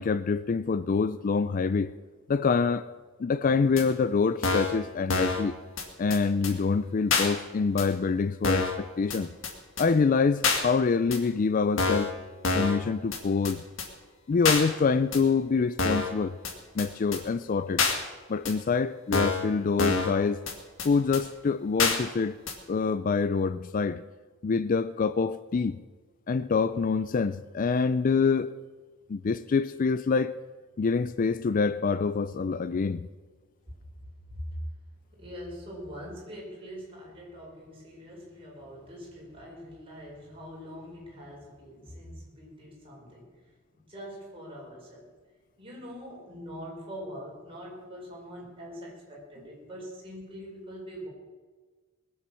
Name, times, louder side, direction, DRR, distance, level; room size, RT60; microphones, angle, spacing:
voice 1, 0.0-1.9 2.3-2.9 3.2-5.6 6.0-9.3 9.8-12.1 12.5-13.6 14.3-16.4 16.7-17.8 18.3-20.4 20.8-22.4 22.7-24.0 24.4-25.8 26.3-28.6 29.1-30.4 30.8-33.1, left 5 dB, 40° left, 0.4 m, -26 dB
sound 1, 3.8-3.9 4.4-4.8 5.1-5.4 5.8-5.9 6.1-6.2 6.4-6.5 7.1-7.3 7.8-7.9 8.4-8.8 9.1-9.2 9.4-9.5 9.8-9.9 10.4-10.6 11.1-11.2 11.8-12.1 12.4-12.8 13.1-13.2 13.4-13.5 13.8-13.9 14.4-14.6 15.1-15.2 15.8-16.1 16.4-16.5 16.8-16.9 17.1-17.2 17.8-17.9 18.4-18.5 19.1-19.4 19.8-20.1 20.5-20.6 20.8-20.9 21.1-21.2 21.8-22.0 22.5-22.6, left 4 dB, 65° left, 2.1 m, -26 dB
voice 2, 35.2-43.3 43.7-45.1 45.6-51.1, equal, 25° right, 5.1 m, -43 dB
20.0 x 7.9 x 6.9 m
head